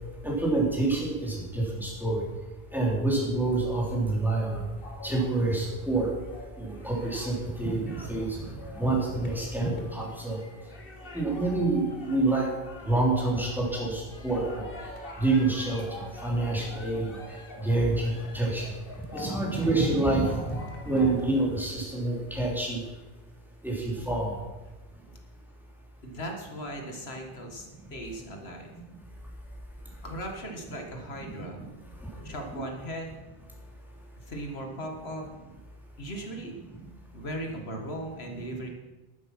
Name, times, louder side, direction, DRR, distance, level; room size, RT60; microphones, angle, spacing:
voice 1, 0.2-2.2 2.7-4.6 5.0-6.1 6.6-8.4 8.7-10.4 11.1-12.5 12.8-14.6 15.2-17.2 17.6-18.7 19.1-20.6 20.8-22.8 23.6-24.3, right 2 dB, ahead, -3 dB, 3.4 m, -27 dB
sound 1, 4.5-21.3, left 2 dB, 65° left, 1.8 m, -46 dB
voice 2, 26.0-28.7 30.0-31.6 32.2-33.1 34.2-35.3 36.0-36.5 37.1-38.7, equal, 85° left, 3 dB, 2.0 m, -38 dB
11.5 x 10.0 x 6.0 m, 1.2 s
omnidirectional pair, 1.0 m